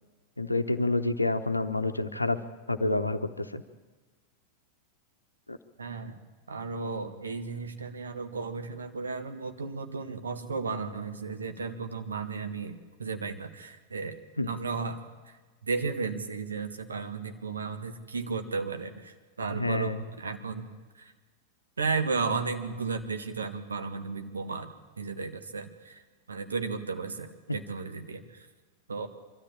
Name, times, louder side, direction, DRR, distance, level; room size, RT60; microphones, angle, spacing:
voice 1, 0.4-2.4 2.7-3.6 5.5-5.6 14.4-14.5 19.5-20.0, left 2 dB, 85° left, 9 dB, 0.8 m, -28 dB
voice 2, 5.8-6.2 6.5-14.2 14.4-15.0 15.2-15.4 15.6-20.7 21.0-21.1 21.8-26.0 26.3-28.5 28.9-29.1, right 4 dB, 75° right, 6 dB, 1.6 m, -34 dB
24.0 x 13.5 x 8.8 m, 1.3 s
figure-of-eight pair, 90°, 0 cm